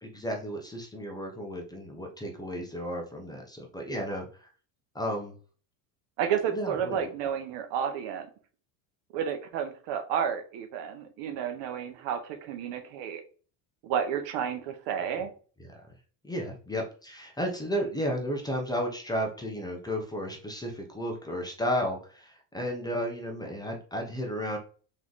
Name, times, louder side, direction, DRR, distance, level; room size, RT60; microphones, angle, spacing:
voice 1, 0.0-4.5 4.9-5.3 6.5-7.1 15.7-15.8 16.2-24.6, equal, 10° left, 1 dB, 0.7 m, -33 dB
voice 2, 6.2-8.3 9.1-13.2 13.8-15.3, right 8 dB, 60° right, 8 dB, 0.9 m, -31 dB
3.8 x 3.1 x 3.9 m, 0.39 s
cardioid pair, 140°, 48 cm